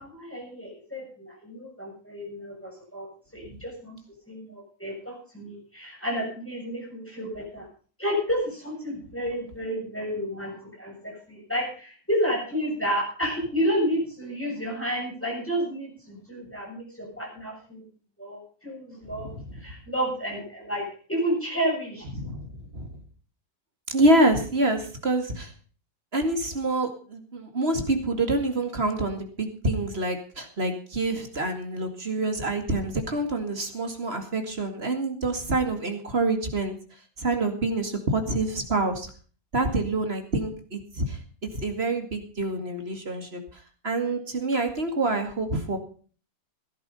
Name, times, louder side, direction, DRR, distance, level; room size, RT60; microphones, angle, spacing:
voice 1, 0.0-3.1 3.3-4.0 4.3-7.7 8.0-17.8 18.2-22.1, equal, 5° left, -2 dB, 7.5 m, -31 dB
voice 2, 22.2-22.9 23.9-25.5 26.1-36.8 37.2-39.1 39.5-43.4 43.8-45.8, right 2 dB, 35° right, 6 dB, 2.4 m, -26 dB
16.5 x 10.5 x 5.5 m, 0.41 s
omnidirectional pair, 1.9 m